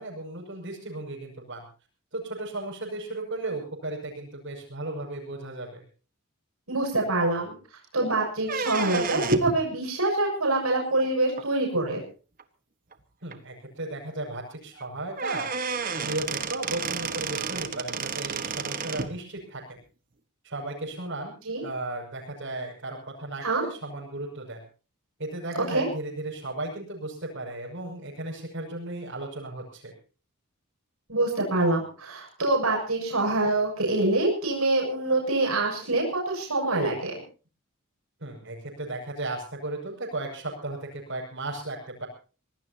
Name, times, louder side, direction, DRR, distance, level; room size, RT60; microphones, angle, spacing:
voice 1, 0.0-1.7 2.1-5.8 13.2-15.5 16.0-19.8 20.4-21.4 21.6-24.6 25.2-29.9 38.2-42.1, right 2 dB, 60° right, -6 dB, 6.3 m, -35 dB
voice 2, 6.7-7.5 7.9-12.0 21.5-21.6 23.4-23.6 25.5-25.9 31.1-37.1, right 2 dB, 85° right, -1 dB, 7.1 m, -25 dB
sound 1, 8.4-9.6 11.4-11.5 12.4-12.5 12.9-13.0 13.3-13.4 14.8-14.9 15.2-19.1, right 5 dB, 40° right, 1.4 m, -31 dB
25.5 x 18.0 x 2.9 m, 0.36 s
head